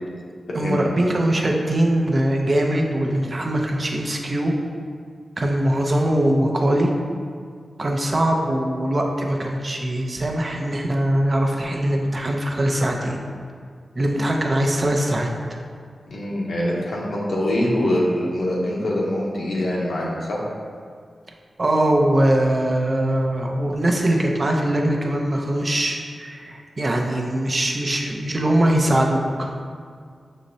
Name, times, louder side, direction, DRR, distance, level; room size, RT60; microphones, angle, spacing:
voice 1, 0.5-4.5 5.4-6.9 7.8-13.2 14.0-15.3 21.6-29.5, right 1 dB, 40° right, 1 dB, 0.6 m, -21 dB
voice 2, 16.1-20.4, left 1 dB, 90° left, -4 dB, 0.9 m, -24 dB
6.4 x 3.1 x 2.7 m, 2.1 s
wide cardioid pair, 75°, 0 cm